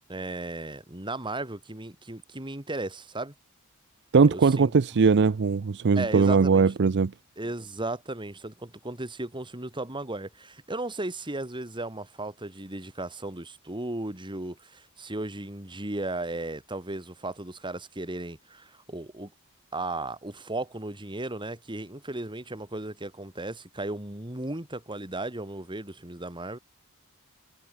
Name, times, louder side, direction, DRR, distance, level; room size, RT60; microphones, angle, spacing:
voice 1, 0.1-3.3 4.3-4.7 5.9-6.7 7.4-19.3 19.7-26.6, right 2 dB, 20° right, 2.7 m, -35 dB
voice 2, 4.1-7.1, right 5 dB, 50° right, 0.5 m, -20 dB
head